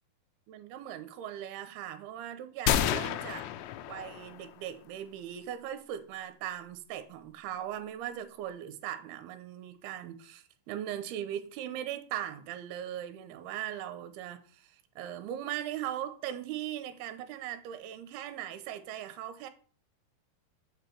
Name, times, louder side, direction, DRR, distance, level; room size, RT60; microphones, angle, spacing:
voice 1, 0.5-3.5 3.9-19.5, right 11 dB, 75° right, 2.6 m, -39 dB
sound 1, 2.7-4.5, left 11 dB, 85° left, 2.8 m, -30 dB
7.4 x 6.3 x 4.5 m
omnidirectional pair, 5.0 m